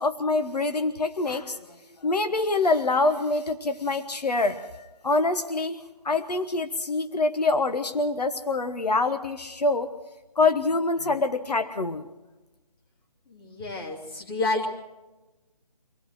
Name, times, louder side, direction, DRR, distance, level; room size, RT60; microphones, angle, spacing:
voice 1, 0.0-1.7 2.0-5.8 6.0-9.9 10.4-12.1, left 3 dB, 90° left, 10 dB, 1.2 m, -25 dB
voice 2, 13.3-14.7, left 2 dB, 35° left, 2 dB, 2.9 m, -29 dB
24.5 x 16.5 x 6.4 m, 1.1 s
figure-of-eight pair, 160°, 20 cm